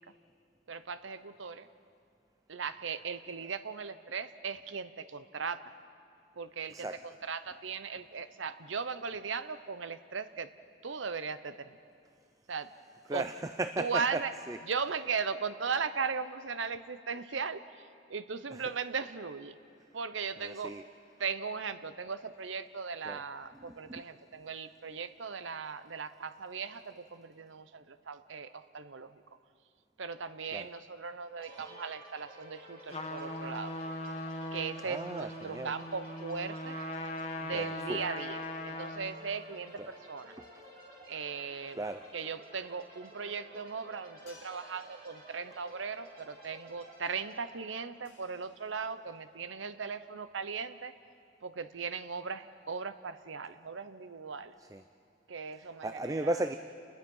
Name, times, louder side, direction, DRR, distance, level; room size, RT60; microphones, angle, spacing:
voice 1, 0.7-1.7 2.5-5.7 6.4-10.5 10.8-11.8 12.5-12.7 13.1-13.3 13.8-14.3 14.6-19.6 19.9-20.8 21.2-29.2 30.0-33.8 34.5-36.8 37.4-40.3 41.1-41.8 42.1-50.9 51.4-54.5 55.3-56.5, right 5 dB, 75° right, 12 dB, 0.8 m, -38 dB
voice 2, 13.1-14.2 14.5-14.6 18.5-18.6 20.4-20.8 23.1-23.2 23.9-24.0 30.5-30.7 34.8-35.7 37.5-38.0 39.8-39.9 41.8-42.0 54.7-54.8 55.8-56.5, right 2 dB, 15° right, 9 dB, 0.4 m, -35 dB
sound 1, 31.4-49.0, right 1 dB, 50° right, 4.5 m, -53 dB
Trumpet, 32.9-39.2, left 1 dB, 35° left, 1.4 m, -40 dB
sound 2, 44.3-49.5, left 2 dB, 60° left, 6.4 m, -63 dB
29.5 x 20.5 x 5.5 m, 2.4 s
head